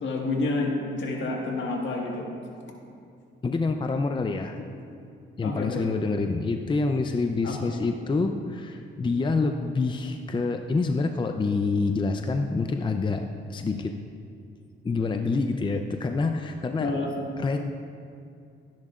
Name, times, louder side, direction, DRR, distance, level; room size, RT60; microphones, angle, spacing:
voice 1, 0.0-2.2 5.4-5.9 7.4-7.7 16.8-17.2, left 2 dB, 65° left, 0 dB, 1.7 m, -29 dB
voice 2, 3.4-4.6 5.4-13.2 13.5-13.9 14.8-16.9 17.4-17.6, left 3 dB, 25° left, 6 dB, 0.5 m, -27 dB
12.5 x 10.5 x 2.5 m, 2.5 s
cardioid pair, 75°, 21 cm